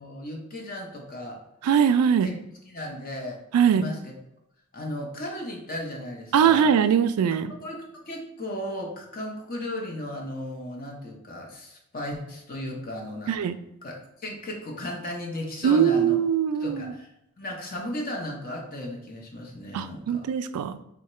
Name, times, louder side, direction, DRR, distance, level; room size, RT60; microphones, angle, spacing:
voice 1, 0.0-1.4 2.2-2.3 2.7-3.4 3.7-4.1 4.7-6.7 7.6-13.3 13.8-16.2 16.6-17.1 17.4-20.3, left 1 dB, 40° left, 0 dB, 0.6 m, -35 dB
voice 2, 1.6-2.3 3.5-3.8 6.3-7.5 13.3-13.5 15.6-16.9 19.7-20.8, right 8 dB, 85° right, 12 dB, 0.3 m, -21 dB
3.7 x 2.1 x 4.2 m, 0.83 s
head